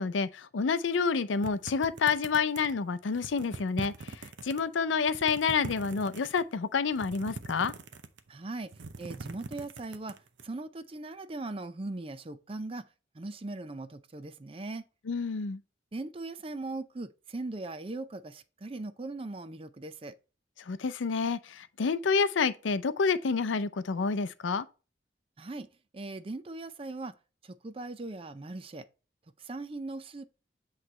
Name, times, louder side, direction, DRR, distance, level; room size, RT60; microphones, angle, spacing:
voice 1, 0.0-7.7 15.1-15.6 20.7-24.7, left 5 dB, 85° left, 0.5 m, -29 dB
sound 1, 1.4-2.8 3.1-4.6 5.0-6.4 6.9-8.3 8.6-10.4, right 3 dB, 75° right, 0.7 m, -42 dB
voice 2, 8.3-8.7 9.0-10.2 10.4-12.9 13.1-14.8 15.9-20.2 25.4-25.7 25.9-27.1 27.4-28.9 29.4-30.3, right 2 dB, 30° right, 0.5 m, -39 dB
8.1 x 3.2 x 4.2 m
head